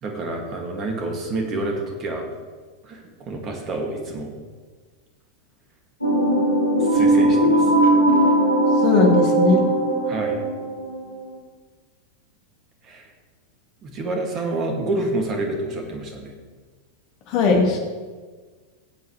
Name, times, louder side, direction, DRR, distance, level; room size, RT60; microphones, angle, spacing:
voice 1, 0.0-2.2 2.8-3.0 3.3-4.3 6.8-7.7 10.1-10.4 12.8-13.1 13.8-16.3, right 2 dB, 30° right, 2 dB, 2.2 m, -28 dB
sound 1, 6.0-11.3, right 1 dB, 85° left, 1.6 m, -19 dB
voice 2, 8.8-9.6 17.3-17.8, left 4 dB, 45° left, 1 dB, 2.1 m, -18 dB
16.5 x 8.2 x 3.2 m, 1.4 s
figure-of-eight pair, 90°, 0 cm